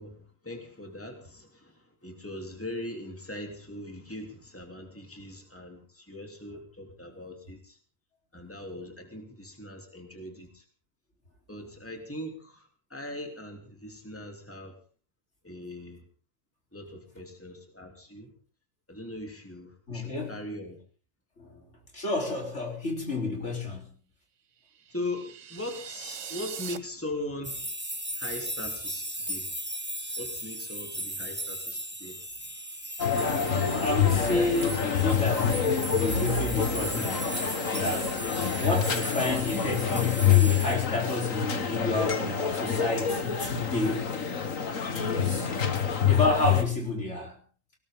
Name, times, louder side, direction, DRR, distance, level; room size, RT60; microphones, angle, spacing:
voice 1, 0.0-7.8 8.3-10.6 11.5-14.8 15.4-16.0 16.7-18.3 18.9-20.8 24.9-27.7 28.2-29.5 30.2-32.2, left 1 dB, 10° left, 2 dB, 3.4 m, -40 dB
voice 2, 19.9-20.4 21.4-21.6 21.9-23.9 33.7-38.1 38.6-44.1 44.9-45.5 46.1-47.4, left 2 dB, 60° left, 1 dB, 4.5 m, -30 dB
sound 1, 24.8-26.8, right 8 dB, 70° right, 1.3 m, -41 dB
sound 2, 27.4-40.8, right 1 dB, 10° right, 1.8 m, -37 dB
sound 3, 33.0-46.6, left 7 dB, 85° left, 2.1 m, -27 dB
20.0 x 18.5 x 3.9 m, 0.41 s
omnidirectional pair, 1.3 m